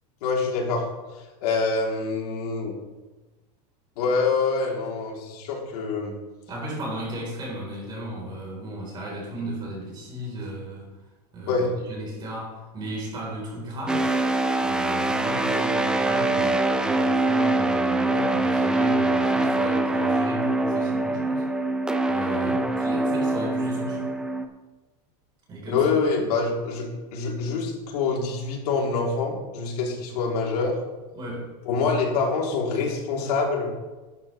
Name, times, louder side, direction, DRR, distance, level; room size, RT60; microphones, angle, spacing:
voice 1, 0.2-0.8 1.4-2.8 4.0-6.1 11.5-11.7 22.4-22.6 25.7-30.8 31.6-33.7, left 4 dB, 70° left, -1 dB, 3.3 m, -25 dB
voice 2, 6.5-10.9 11.3-14.1 14.6-21.4 22.1-24.2 25.5-25.8 31.1-31.5, right 1 dB, 20° right, -3 dB, 4.1 m, -35 dB
sound 1, 13.9-24.4, right 2 dB, 5° right, 0.5 m, -24 dB
13.0 x 12.0 x 3.3 m, 1.2 s
supercardioid pair, 175°, 20 cm